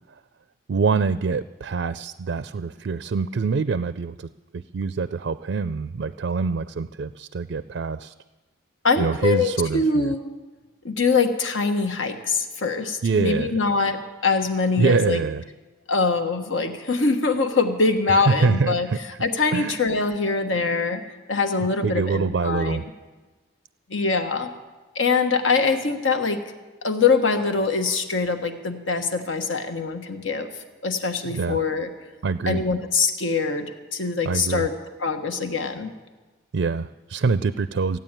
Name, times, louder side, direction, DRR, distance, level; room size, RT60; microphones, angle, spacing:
voice 1, 0.7-4.3 4.5-8.1 9.0-10.1 13.0-13.5 14.8-15.4 18.3-19.0 19.5-19.8 21.6-22.9 31.3-31.6 32.2-32.6 34.3-34.7 36.5-38.0, right 4 dB, 65° right, 13 dB, 0.4 m, -25 dB
voice 2, 8.8-10.2 10.8-15.2 15.9-18.9 19.2-21.0 21.3-22.8 23.9-24.5 24.9-26.4 26.8-30.5 30.8-31.9 32.5-34.7 35.0-35.9, left 4 dB, 80° left, 6 dB, 1.3 m, -23 dB
15.5 x 9.3 x 8.9 m, 1.3 s
head